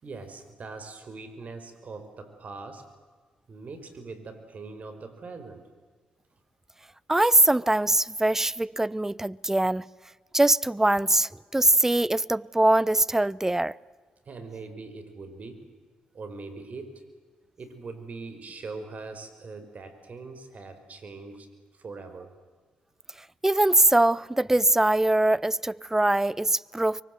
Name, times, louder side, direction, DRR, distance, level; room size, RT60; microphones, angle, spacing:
voice 1, 0.0-2.9 3.5-5.7 14.3-15.7 16.1-17.0 17.6-21.5 21.7-22.3, right 3 dB, 50° right, 5.1 m, -41 dB
voice 2, 7.1-9.8 10.3-13.8 23.4-27.0, right 1 dB, 15° right, 0.7 m, -22 dB
25.0 x 24.0 x 7.9 m
supercardioid pair, 50°, 3 cm